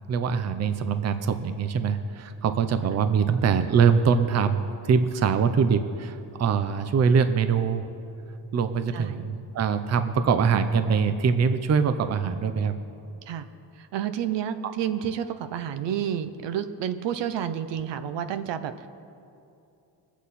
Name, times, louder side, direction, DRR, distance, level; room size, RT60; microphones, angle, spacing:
voice 1, 0.1-7.9 8.5-12.8 14.6-14.7, right 6 dB, 40° right, 10 dB, 0.6 m, -23 dB
voice 2, 8.9-9.3 13.3-13.4 13.8-18.9, right 9 dB, 75° right, 10 dB, 0.8 m, -30 dB
21.0 x 8.3 x 4.2 m, 2.7 s
cardioid pair, 140°, 43 cm